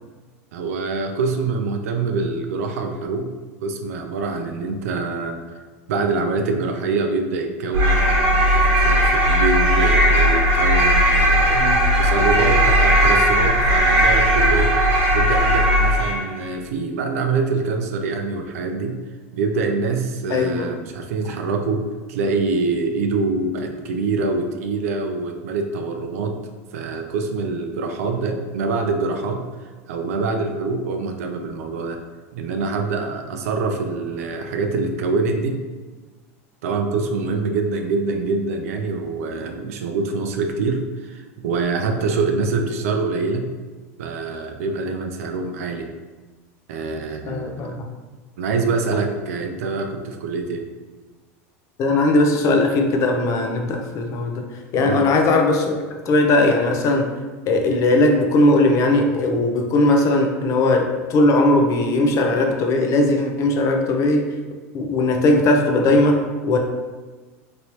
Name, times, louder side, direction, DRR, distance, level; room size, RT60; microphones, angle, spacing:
voice 1, 0.5-3.3 3.6-5.4 5.9-11.6 12.0-14.7 15.1-19.0 19.3-26.4 26.7-32.0 32.3-35.6 36.6-43.4 44.0-45.9 46.7-47.8 48.4-50.7 54.8-55.1, right 4 dB, 75° right, 5 dB, 0.5 m, -25 dB
sound 1, 7.7-16.3, equal, 60° right, 1.1 m, -17 dB
voice 2, 20.3-20.7 47.2-47.8 51.8-54.4 54.7-55.8 56.1-57.1 57.5-64.3 64.7-66.6, left 2 dB, 40° left, 3 dB, 0.5 m, -18 dB
3.0 x 2.7 x 3.0 m, 1.3 s
hypercardioid pair, 110°, 8 cm